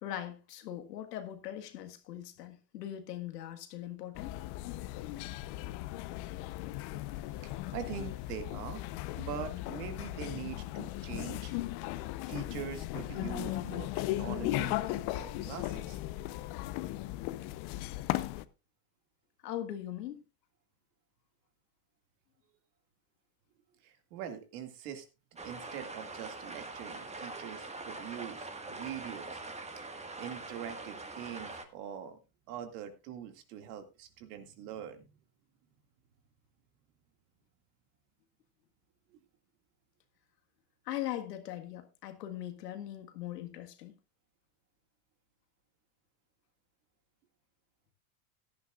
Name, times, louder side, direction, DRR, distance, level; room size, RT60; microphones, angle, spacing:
voice 1, 0.0-4.4 19.4-20.2 40.8-43.9, left 12 dB, 90° left, 1.7 m, -40 dB
sound 1, 4.1-18.4, left 16 dB, 55° left, 0.8 m, -37 dB
voice 2, 7.4-8.8 9.2-11.5 12.3-16.0 23.8-25.1 25.4-29.4 29.8-32.2 32.5-35.1, right 9 dB, 70° right, 2.2 m, -43 dB
sound 2, 25.4-31.6, right 3 dB, 15° right, 1.6 m, -43 dB
16.5 x 11.5 x 2.4 m
hypercardioid pair, 100°, 47 cm